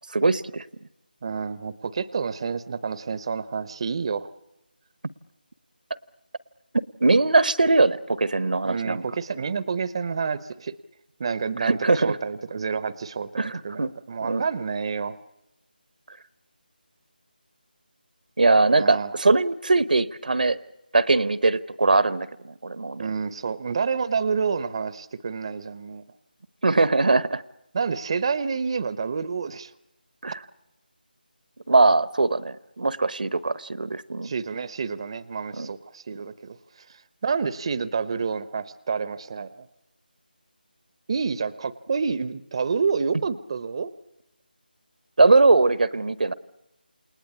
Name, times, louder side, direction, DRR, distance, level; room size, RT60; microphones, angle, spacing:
voice 1, 0.1-0.6 7.0-9.0 11.6-12.2 13.4-13.9 14.2-14.4 18.4-20.6 20.9-23.1 26.6-27.4 30.2-30.4 31.7-34.3 35.6-35.7 45.2-46.3, right 3 dB, 60° right, 17 dB, 1.0 m, -21 dB
voice 2, 1.2-4.3 8.6-10.7 11.2-15.2 18.7-19.2 23.0-26.0 27.7-29.7 34.2-39.7 41.1-43.9, right 5 dB, 30° right, 17 dB, 0.8 m, -29 dB
29.0 x 19.5 x 8.4 m, 0.89 s
figure-of-eight pair, 165°, 5 cm